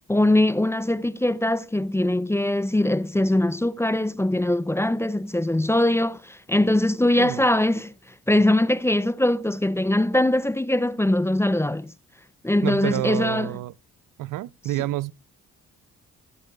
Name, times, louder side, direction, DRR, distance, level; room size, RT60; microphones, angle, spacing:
voice 1, 0.1-7.9 8.3-11.9 12.4-13.5, left 1 dB, 10° left, 0.5 m, -22 dB
voice 2, 12.6-13.7 14.2-15.1, right 15 dB, 75° right, 0.5 m, -28 dB
22.0 x 8.1 x 2.3 m
cardioid pair, 65°, 32 cm